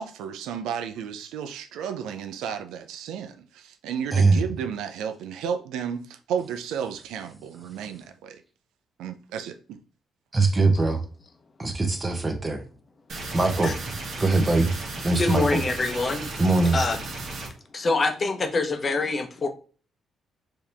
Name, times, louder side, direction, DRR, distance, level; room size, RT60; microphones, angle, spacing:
voice 1, 0.0-8.4 9.0-9.8, right 7 dB, 90° right, 0.4 m, -33 dB
voice 2, 10.3-11.0 11.6-12.6 13.3-13.7 14.2-14.7 15.0-15.6 16.4-16.8, right 3 dB, 25° right, 1.0 m, -21 dB
sound 1, 13.1-17.5, right 2 dB, 60° right, 1.4 m, -35 dB
voice 3, 15.2-16.3 16.7-17.0 17.7-19.5, left 3 dB, 35° left, 0.8 m, -25 dB
4.7 x 2.9 x 3.4 m
cardioid pair, 90°, 0 cm